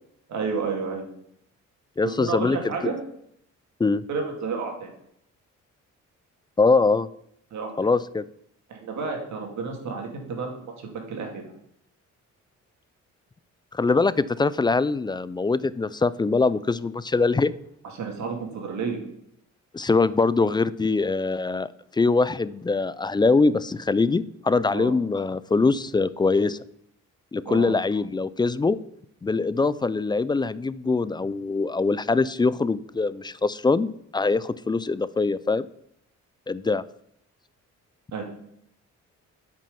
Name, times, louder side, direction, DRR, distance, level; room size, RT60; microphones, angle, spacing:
voice 1, 0.3-1.1 2.0-3.0 4.1-4.9 7.5-7.9 8.7-11.5 17.9-19.0 24.7-24.9 27.5-27.7 38.1-38.2, right 5 dB, 65° right, 2 dB, 2.6 m, -31 dB
voice 2, 2.0-2.7 3.8-4.0 6.6-7.1 7.8-8.2 13.7-17.5 19.7-26.6 27.3-28.8 29.2-35.7 36.5-36.8, left 3 dB, 15° left, 18 dB, 0.3 m, -23 dB
8.7 x 6.1 x 5.5 m, 0.73 s
cardioid pair, 90°, 30 cm